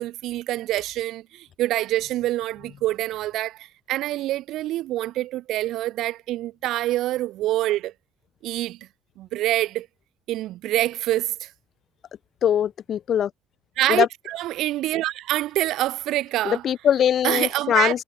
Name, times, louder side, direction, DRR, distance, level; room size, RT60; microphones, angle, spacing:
voice 1, 0.0-7.9 8.4-8.8 9.2-9.9 10.3-11.5 13.8-16.6 17.2-18.0, right 15 dB, 65° right, 1.5 m, -26 dB
voice 2, 12.4-13.3 13.9-14.1 16.4-18.0, left 9 dB, 40° left, 0.6 m, -21 dB
cardioid pair, 160°, 0 cm